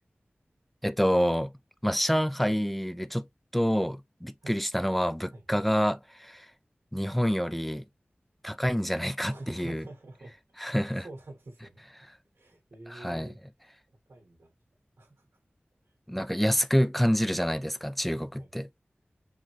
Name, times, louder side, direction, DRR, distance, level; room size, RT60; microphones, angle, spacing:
voice 1, 0.8-1.5 1.8-3.3 3.5-6.5 6.9-7.8 8.4-9.8 10.6-11.0 12.9-13.3 16.1-18.7, equal, 5° left, 0.4 m, -27 dB
voice 2, 9.3-11.8 12.3-13.4 14.1-14.5 15.0-15.3 18.1-18.6, right 2 dB, 85° right, 1.8 m, -47 dB
4.7 x 2.9 x 3.1 m
wide cardioid pair, 60°, 4 cm